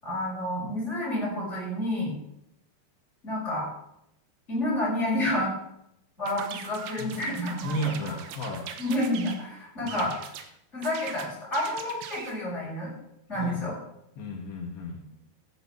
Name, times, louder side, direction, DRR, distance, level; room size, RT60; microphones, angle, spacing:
voice 1, 0.0-2.1 3.2-3.7 4.5-5.5 6.2-8.1 8.8-10.1 10.7-12.9 13.3-13.7, left 1 dB, 15° left, -5 dB, 6.2 m, -29 dB
sound 1, 6.3-9.4 9.9-10.5 10.8-12.4, right 8 dB, 70° right, 2.5 m, -41 dB
voice 2, 7.6-8.7 9.8-10.1 13.3-13.6 14.2-15.0, equal, 75° left, -2 dB, 4.0 m, -33 dB
14.5 x 8.4 x 5.9 m, 0.79 s
omnidirectional pair, 5.0 m